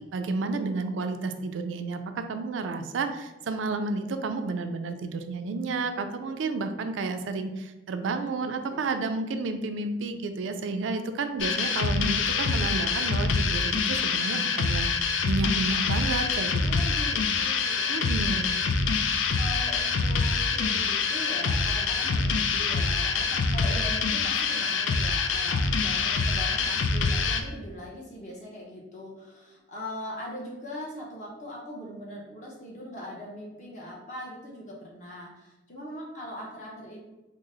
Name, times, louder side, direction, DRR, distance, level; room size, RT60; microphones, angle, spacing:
voice 1, 0.1-16.8 17.9-18.5, right 3 dB, 85° right, 8 dB, 0.4 m, -31 dB
voice 2, 8.6-8.9 16.6-18.7 19.3-37.0, left 1 dB, 40° left, -3 dB, 0.7 m, -41 dB
sound 1, 11.4-27.4, left 4 dB, 85° left, 0.4 m, -26 dB
3.8 x 2.0 x 3.8 m, 1.1 s
head